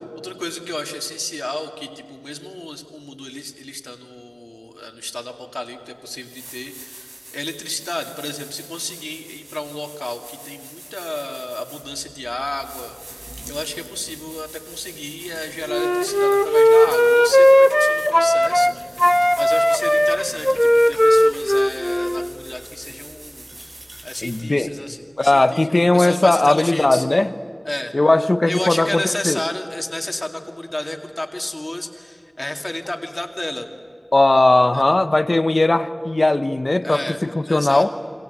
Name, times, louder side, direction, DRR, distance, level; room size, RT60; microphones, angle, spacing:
voice 1, 0.2-27.1 27.7-27.9 28.5-33.7 34.7-34.9 36.8-37.2 37.5-37.8, left 1 dB, 50° left, 4 dB, 2.3 m, -31 dB
sound 1, 5.7-5.8 6.2-24.8, right 1 dB, 80° right, 5.1 m, -42 dB
Wind instrument woodwind instrument, 15.7-18.7 19.0-22.3, equal, 10° left, 0.6 m, -16 dB
voice 2, 24.2-24.7 25.2-27.3 27.9-29.4 34.1-37.9, left 2 dB, 75° left, 11 dB, 1.0 m, -18 dB
29.0 x 24.5 x 8.2 m, 2.6 s
wide cardioid pair, 45°, 0 cm